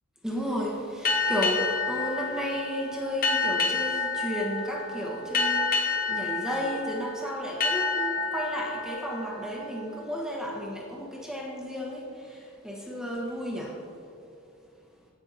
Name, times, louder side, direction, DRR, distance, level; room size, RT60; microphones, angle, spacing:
voice 1, 0.2-13.9, equal, 5° right, -3 dB, 1.1 m, -33 dB
sound 1, 1.0-10.3, left 4 dB, 40° left, 0.9 m, -29 dB
16.5 x 5.6 x 2.7 m, 2.5 s
head